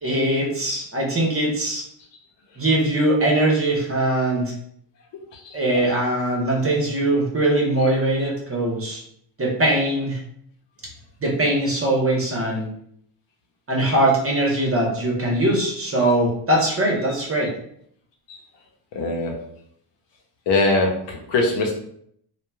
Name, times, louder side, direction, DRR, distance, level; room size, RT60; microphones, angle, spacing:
voice 1, 0.0-1.8 2.6-4.5 5.5-9.0 9.4-10.2 11.2-12.7 13.7-17.5, right 1 dB, 30° right, -2 dB, 1.1 m, -21 dB
voice 2, 18.9-19.3 20.5-21.7, left 2 dB, 65° left, 1 dB, 0.8 m, -22 dB
2.9 x 2.3 x 2.3 m, 0.67 s
supercardioid pair, 75°, 46 cm